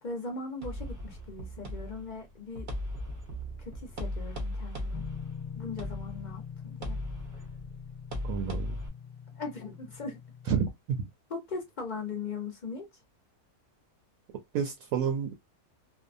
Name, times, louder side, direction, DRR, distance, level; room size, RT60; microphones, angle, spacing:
voice 1, 0.0-2.7 2.9-3.1 3.6-5.0 5.5-7.0 9.3-10.2 11.3-12.9, left 4 dB, 55° left, 0.5 m, -39 dB
sound 1, 0.6-8.9, left 1 dB, 45° right, 0.7 m, -38 dB
sound 2, 4.9-10.5, left 7 dB, 15° left, 1.0 m, -43 dB
voice 2, 8.2-8.8 10.5-11.0 14.5-15.3, right 7 dB, 70° right, 0.9 m, -30 dB
2.6 x 2.1 x 2.5 m
omnidirectional pair, 1.6 m